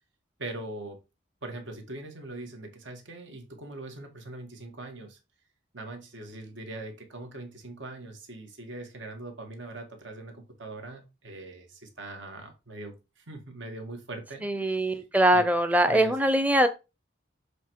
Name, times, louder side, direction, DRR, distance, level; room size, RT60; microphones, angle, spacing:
voice 1, 0.4-1.0 1.4-5.2 5.7-15.0 15.3-15.4 15.9-16.2, right 2 dB, 70° right, 1.8 m, -41 dB
voice 2, 14.4-16.7, right 1 dB, 10° right, 0.7 m, -22 dB
7.2 x 3.4 x 4.6 m
head